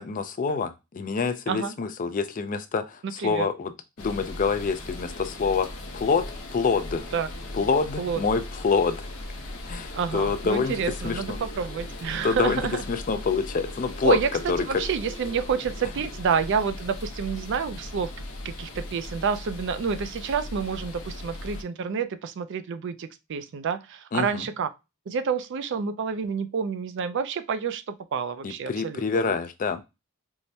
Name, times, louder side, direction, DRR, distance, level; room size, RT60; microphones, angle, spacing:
voice 1, 0.0-3.7 4.0-6.2 6.5-7.0 7.6-9.1 9.7-10.8 11.0-11.2 12.2-12.6 12.9-14.2 14.5-14.6 24.1-24.4 28.4-29.8, left 5 dB, 35° left, 0.4 m, -26 dB
voice 2, 3.2-3.5 7.1-7.3 8.0-8.3 9.9-12.8 14.0-18.1 18.4-24.7 25.1-29.3, right 6 dB, 55° right, 0.4 m, -29 dB
sound 1, 4.0-21.6, left 1 dB, 75° left, 0.8 m, -38 dB
4.6 x 2.1 x 2.7 m
head